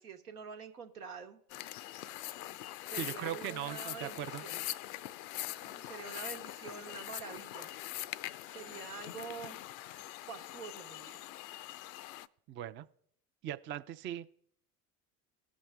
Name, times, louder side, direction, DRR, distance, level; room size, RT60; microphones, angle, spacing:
voice 1, 0.0-1.4 2.9-4.6 5.6-7.7 8.5-9.6 10.3-11.2, right 6 dB, 90° right, 3 dB, 1.2 m, -46 dB
sound 1, 1.5-12.3, left 15 dB, 75° left, 0.5 m, -43 dB
voice 2, 3.0-4.4 12.5-12.8 13.4-14.3, right 11 dB, 30° right, 11 dB, 0.4 m, -39 dB
17.5 x 6.2 x 3.4 m, 0.65 s
hypercardioid pair, 75°, 44 cm